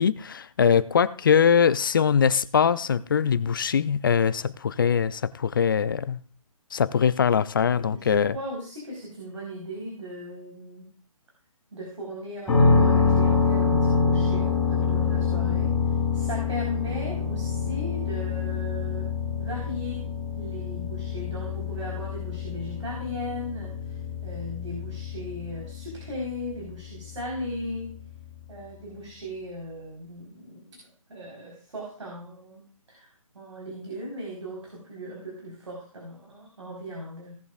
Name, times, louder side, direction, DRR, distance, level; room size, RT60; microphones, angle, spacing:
voice 1, 0.0-6.2 6.7-8.3, left 7 dB, 40° left, 17 dB, 0.5 m, -22 dB
voice 2, 7.9-10.9 11.7-19.1 19.4-20.0 20.4-24.0 24.2-27.9 28.5-30.8 31.1-33.1 33.3-37.3, equal, 60° right, -2 dB, 4.3 m, -37 dB
sound 1, 12.5-28.3, left 5 dB, 5° left, 6.7 m, -26 dB
17.5 x 10.5 x 2.5 m, 0.44 s
figure-of-eight pair, 145°, 18 cm